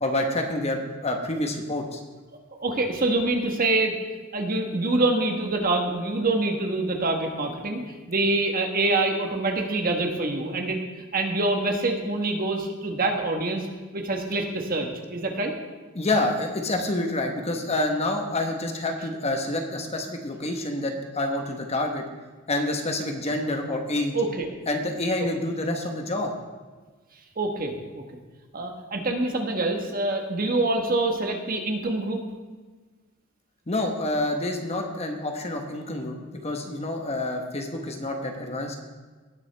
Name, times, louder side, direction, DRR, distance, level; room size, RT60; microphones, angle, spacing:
voice 1, 0.0-2.0 15.9-22.0 22.5-24.2 24.7-26.3 33.7-38.8, left 1 dB, 30° left, 3 dB, 1.2 m, -28 dB
voice 2, 2.6-4.0 4.3-13.7 13.9-15.5 24.1-24.6 27.4-27.7 28.5-32.2, right 2 dB, 40° right, 3 dB, 1.3 m, -25 dB
18.0 x 7.1 x 3.4 m, 1.3 s
head